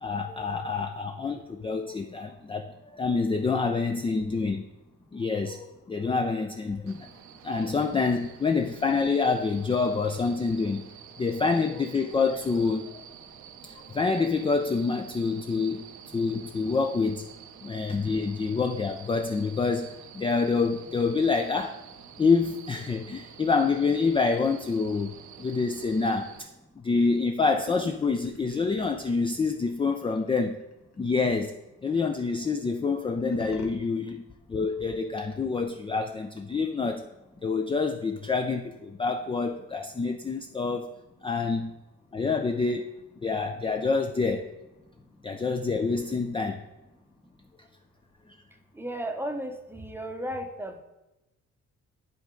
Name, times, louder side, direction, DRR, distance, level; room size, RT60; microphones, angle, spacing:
voice 1, 0.0-4.6 5.1-7.1 7.4-10.8 11.2-13.0 13.6-15.8 16.1-17.2 17.6-21.8 22.2-26.3 26.8-30.6 31.0-31.5 31.8-34.2 34.5-37.1 37.4-40.9 41.2-41.7 42.1-42.9 43.2-44.5 45.2-46.6, left 4 dB, 20° left, 5 dB, 0.4 m, -27 dB
sound 1, 6.9-26.4, right 8 dB, 75° right, 0.7 m, -49 dB
sound 2, 27.4-31.2 33.1-33.7, left 4 dB, 60° left, 1.2 m, -44 dB
voice 2, 48.8-50.8, right 1 dB, 5° right, 5 dB, 0.7 m, -34 dB
10.5 x 3.9 x 3.7 m, 0.98 s
cardioid pair, 90°, 30 cm